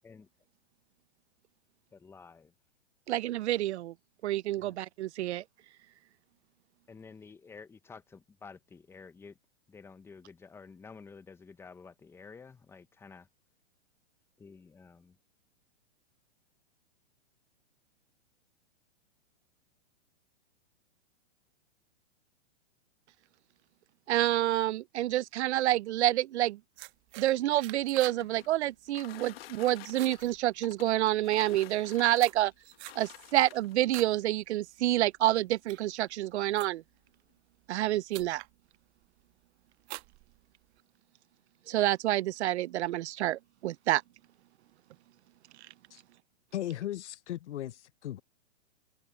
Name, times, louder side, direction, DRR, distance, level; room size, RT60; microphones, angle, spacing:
voice 1, 1.9-2.5 4.6-4.8 6.9-9.4 9.7-13.3 14.4-15.2, left 5 dB, 5° left, 0.8 m, -51 dB
voice 2, 3.1-3.9 4.2-5.4 24.1-26.6 27.2-32.5 33.0-36.8 37.7-38.4 41.7-44.0, right 14 dB, 75° right, 0.5 m, -28 dB
sound 1, 26.8-28.3 28.6-28.9 29.3-29.6 29.8-31.0 31.7-34.2 34.6-34.9 35.4-37.0 37.7-37.8 38.1-38.5 39.0-39.4 39.8-40.8, right 22 dB, 35° right, 1.3 m, -47 dB
sound 2, 27.7-33.9 34.8-34.9 35.3-35.4 35.7-36.1, left 15 dB, 60° left, 1.5 m, -51 dB
voice 3, 46.5-48.2, left 12 dB, 85° left, 0.7 m, -37 dB
hypercardioid pair, 140°, 34 cm